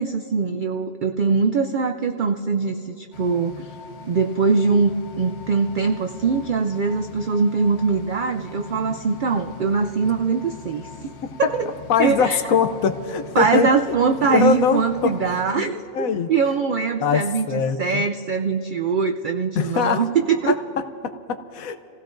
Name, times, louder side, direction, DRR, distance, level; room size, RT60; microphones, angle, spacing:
voice 1, 0.0-3.7 4.1-10.8 11.4-11.7 12.0-12.4 13.4-20.6, right 5 dB, 85° right, 6 dB, 0.4 m, -22 dB
sound 1, 3.1-15.5, left 5 dB, 55° left, 1.0 m, -41 dB
voice 2, 11.2-11.5 11.9-13.9 14.2-15.1 15.5-16.3 17.0-18.1 19.5-20.0 20.5-20.6 21.0-21.8, left 6 dB, 85° left, 9 dB, 1.2 m, -22 dB
28.0 x 16.5 x 2.6 m, 3.0 s
omnidirectional pair, 1.4 m